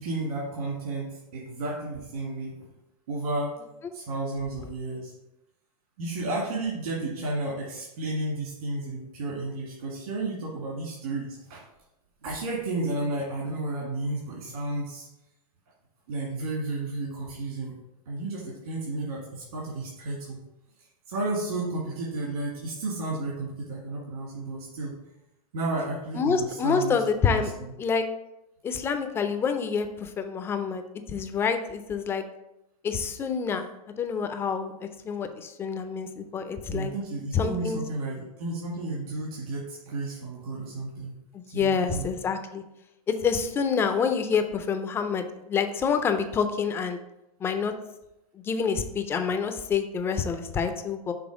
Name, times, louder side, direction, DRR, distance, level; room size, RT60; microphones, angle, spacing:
voice 1, 0.0-2.7 3.1-3.6 3.9-5.1 6.0-11.6 12.2-15.1 16.1-17.8 18.1-20.4 21.1-24.9 25.5-27.0 27.2-27.7 36.7-41.1 41.5-42.1, right 2 dB, 70° right, -4 dB, 2.0 m, -32 dB
voice 2, 26.2-27.5 27.8-28.1 28.6-30.8 31.1-32.2 32.8-33.6 34.0-34.7 35.1-36.9 37.3-37.8 41.3-42.6 43.1-47.0 47.4-47.7 48.4-51.1, left 6 dB, 10° left, 8 dB, 0.3 m, -27 dB
6.2 x 3.4 x 4.8 m, 0.90 s
hypercardioid pair, 145°, 20 cm